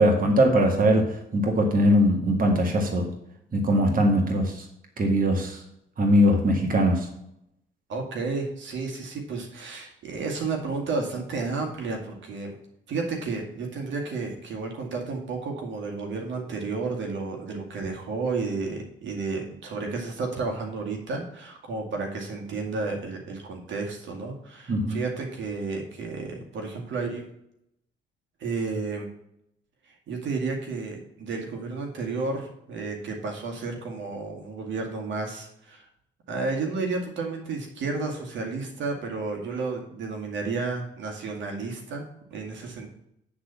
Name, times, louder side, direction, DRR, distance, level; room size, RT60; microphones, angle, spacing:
voice 1, 0.0-3.1 3.5-4.6 5.0-5.6 6.0-7.1 24.7-25.0, equal, 45° right, 2 dB, 2.0 m, -21 dB
voice 2, 7.9-12.5 12.9-27.3 28.4-29.1 29.9-35.9 36.3-42.9, right 4 dB, 70° right, 1 dB, 2.1 m, -32 dB
9.5 x 4.1 x 6.9 m, 0.77 s
cardioid pair, 90°, 20 cm